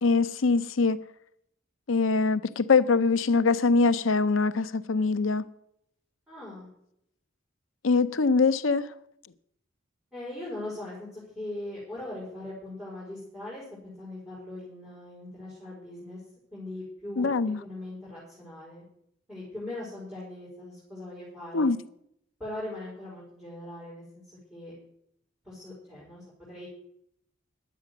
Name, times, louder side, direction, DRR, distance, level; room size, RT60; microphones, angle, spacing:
voice 1, 0.0-1.0 1.9-5.4 7.8-8.9 17.2-17.6 21.5-21.8, left 4 dB, 80° left, 0.7 m, -23 dB
voice 2, 6.3-6.7 10.1-16.2 16.5-17.3 17.6-18.8 19.3-21.7 22.4-24.2 24.5-24.7 25.4-26.7, left 1 dB, ahead, 4.9 m, -40 dB
11.0 x 8.3 x 9.3 m
head